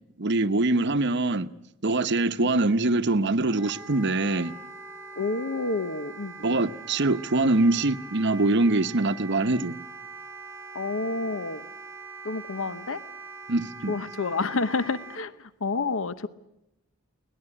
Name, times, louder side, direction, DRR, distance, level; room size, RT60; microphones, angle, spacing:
voice 1, 0.2-1.5 1.8-4.5 6.4-9.8 13.5-13.9, right 2 dB, 55° right, 0.9 m, -23 dB
Wind instrument woodwind instrument, 3.5-15.2, right 4 dB, 10° right, 1.3 m, -43 dB
voice 2, 5.2-6.7 10.7-11.6 12.2-13.0 13.9-16.3, left 3 dB, 65° left, 0.9 m, -29 dB
24.0 x 18.5 x 9.9 m
head